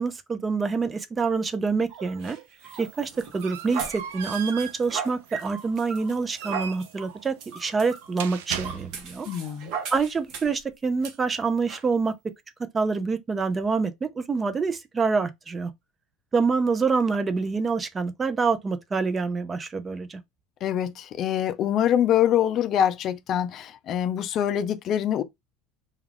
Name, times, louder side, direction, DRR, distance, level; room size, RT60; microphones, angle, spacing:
voice 1, 0.0-2.4 2.8-9.3 9.9-12.1 12.7-15.7 16.3-20.2, right 4 dB, 20° right, 0.5 m, -26 dB
sound 1, 1.9-10.6 11.0-11.1 11.7-11.9, right 7 dB, 60° right, 0.8 m, -38 dB
sound 2, 2.6-9.3, right 9 dB, 85° right, 0.4 m, -39 dB
voice 2, 9.3-9.7 20.6-25.2, left 10 dB, 45° left, 0.3 m, -24 dB
2.3 x 2.3 x 3.3 m
supercardioid pair, 105°, 0 cm